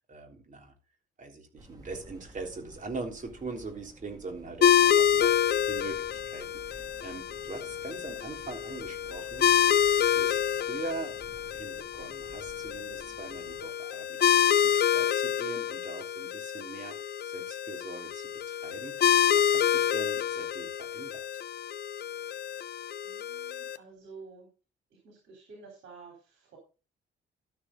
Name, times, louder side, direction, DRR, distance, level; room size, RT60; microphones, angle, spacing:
voice 1, 0.1-0.7 1.2-5.4 5.7-9.5 10.0-11.1 11.5-19.0 19.3-21.2, right 3 dB, 40° right, 3 dB, 3.4 m, -42 dB
sound 1, 1.6-13.6, right 1 dB, 20° right, 3.0 m, -53 dB
sound 2, 4.6-23.8, left 9 dB, 55° left, 0.7 m, -27 dB
voice 2, 23.0-24.5 25.0-26.6, right 4 dB, 75° right, 1 dB, 3.9 m, -50 dB
13.0 x 6.5 x 3.8 m, 0.32 s
cardioid pair, 90°, 20 cm